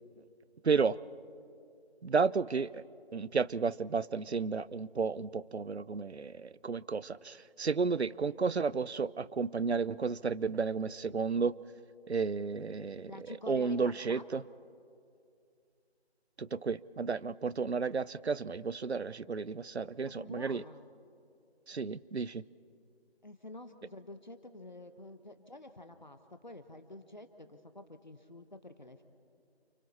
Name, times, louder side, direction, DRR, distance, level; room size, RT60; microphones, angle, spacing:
voice 1, 0.6-1.0 2.0-2.8 3.1-11.5 12.1-13.1 13.5-14.4 16.4-20.6 21.7-22.4, right 5 dB, 80° right, 20 dB, 0.7 m, -32 dB
voice 2, 13.1-14.2 20.0-20.9 23.2-29.0, left 1 dB, 45° left, 9 dB, 1.1 m, -48 dB
29.5 x 28.5 x 4.3 m, 2.5 s
figure-of-eight pair, 175°, 32 cm